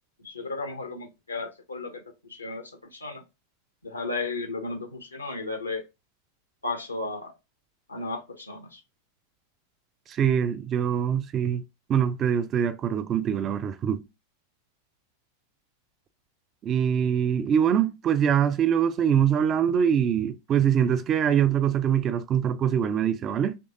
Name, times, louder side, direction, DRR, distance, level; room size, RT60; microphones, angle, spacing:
voice 1, 0.2-3.2 3.8-5.8 6.6-7.3 7.9-8.8, left 3 dB, 80° left, 0.6 m, -34 dB
voice 2, 10.1-11.6 11.9-14.0 16.6-23.6, right 8 dB, 30° right, 0.3 m, -23 dB
3.1 x 2.6 x 2.6 m
figure-of-eight pair, 90°, 0 cm